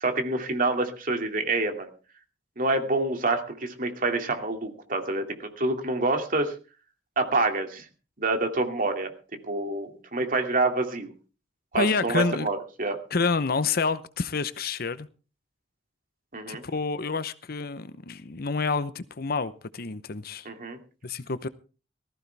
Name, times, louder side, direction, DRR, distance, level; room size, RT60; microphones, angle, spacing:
voice 1, 0.0-1.9 2.6-6.5 7.2-7.9 8.2-9.1 9.4-11.1 11.7-13.0 16.3-16.6 20.4-20.8, right 2 dB, 50° right, 2.5 m, -27 dB
voice 2, 11.7-12.5 13.1-15.1 16.5-20.5 21.0-21.5, left 4 dB, 55° left, 0.8 m, -28 dB
19.0 x 14.5 x 3.5 m
head